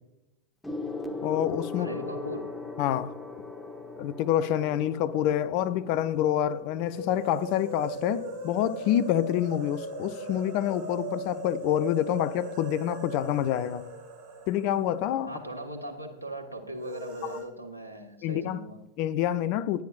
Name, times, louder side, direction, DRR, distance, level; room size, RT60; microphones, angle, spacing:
Gong, 0.6-10.4 11.3-11.6, left 3 dB, 10° left, 1.3 m, -40 dB
voice 1, 1.2-1.9 2.8-3.1 4.0-13.8 14.5-15.3 18.2-18.6 19.0-19.8, left 11 dB, 45° left, 0.6 m, -27 dB
voice 2, 1.7-2.5 15.3-18.8, right 1 dB, 90° left, 1.5 m, -39 dB
sound 1, 6.9-15.8 16.0-16.1 16.8-17.4, right 2 dB, 55° right, 4.1 m, -39 dB
17.5 x 10.5 x 2.5 m
figure-of-eight pair, 90°, 0 cm